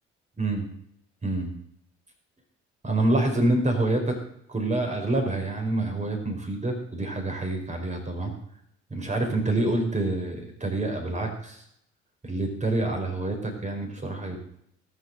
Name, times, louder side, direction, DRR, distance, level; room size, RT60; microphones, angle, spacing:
voice 1, 2.8-4.2 4.5-8.3 8.9-11.6 12.2-14.4, right 2 dB, 20° right, 3 dB, 4.7 m, -27 dB
19.5 x 6.9 x 6.6 m, 0.70 s
figure-of-eight pair, 50°, 34 cm